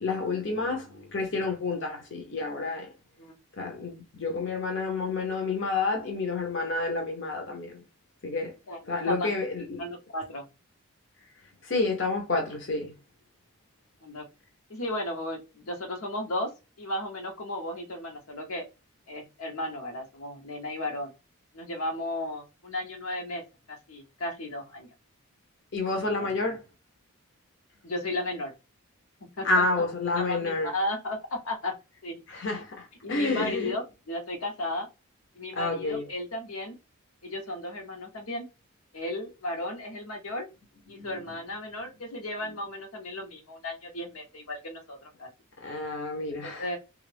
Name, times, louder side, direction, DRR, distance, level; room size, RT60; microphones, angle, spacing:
voice 1, 0.0-2.9 3.6-7.8 8.2-8.5 8.9-9.8 11.6-12.9 25.7-26.6 29.4-30.7 32.3-33.7 35.6-36.0 41.0-41.1 45.6-46.8, left 3 dB, 55° left, 0.7 m, -29 dB
voice 2, 8.7-9.3 9.8-10.5 14.0-14.3 14.7-16.5 16.8-18.6 19.1-21.1 21.5-23.4 23.7-24.9 26.0-26.6 27.8-28.5 29.4-29.6 30.2-31.7 32.0-32.2 33.0-34.9 35.3-36.7 37.2-38.5 38.9-40.5 40.9-45.3 46.3-46.8, left 1 dB, 80° left, 1.0 m, -34 dB
3.3 x 2.4 x 3.3 m
head